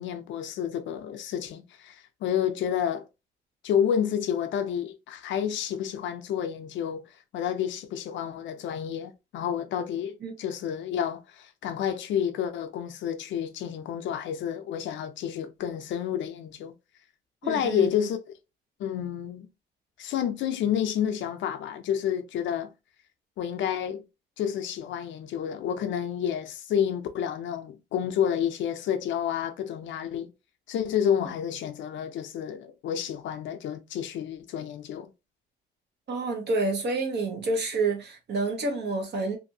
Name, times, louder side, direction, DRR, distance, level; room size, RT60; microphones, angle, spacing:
voice 1, 0.0-3.1 3.6-7.1 7.3-16.7 17.4-18.2 18.8-19.5 20.0-22.7 23.4-24.0 24.4-30.3 30.7-35.1, left 9 dB, 75° left, 0.4 m, -30 dB
voice 2, 17.4-17.9 36.1-39.4, right 3 dB, 60° right, 1.0 m, -28 dB
2.6 x 2.5 x 2.7 m
cardioid pair, 90°, 20 cm